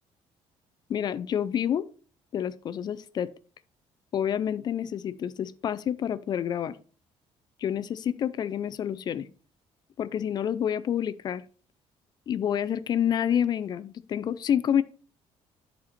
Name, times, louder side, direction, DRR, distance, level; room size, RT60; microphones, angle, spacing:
voice 1, 0.9-1.8 2.3-3.3 4.1-6.8 7.6-9.3 10.0-11.4 12.3-14.8, left 9 dB, 35° left, 0.4 m, -28 dB
10.0 x 4.3 x 4.3 m
cardioid pair, 170°, 12 cm